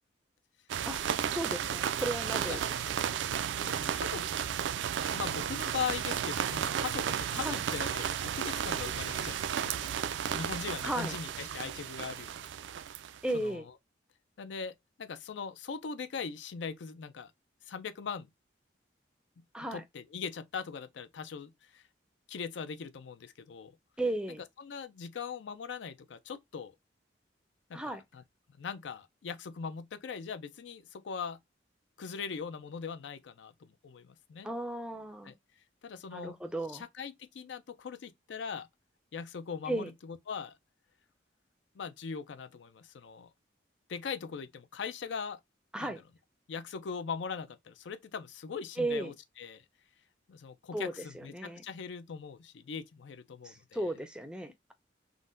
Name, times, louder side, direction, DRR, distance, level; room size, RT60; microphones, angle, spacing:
sound 1, 0.7-13.3, right 9 dB, 80° right, 0.3 m, -33 dB
voice 1, 1.3-2.6 7.4-7.6 10.8-11.1 13.2-13.7 19.5-19.8 24.0-24.4 27.7-28.0 34.4-35.3 36.1-36.8 39.7-39.9 45.7-46.0 48.8-49.1 50.7-51.6 53.4-54.7, right 1 dB, 5° right, 0.4 m, -35 dB
voice 2, 2.3-2.6 3.6-4.3 5.1-9.9 10.3-12.5 13.3-13.7 14.4-17.3 17.6-18.3 19.4-19.5 19.7-21.8 22.3-23.7 24.6-26.7 27.7-28.2 28.6-31.4 32.0-34.5 35.2-35.3 35.8-36.4 36.7-38.7 39.1-40.6 41.7-43.3 43.9-45.4 45.8-45.9 46.5-49.6 50.3-53.8, left 6 dB, 80° left, 0.4 m, -40 dB
3.8 x 2.1 x 2.4 m
head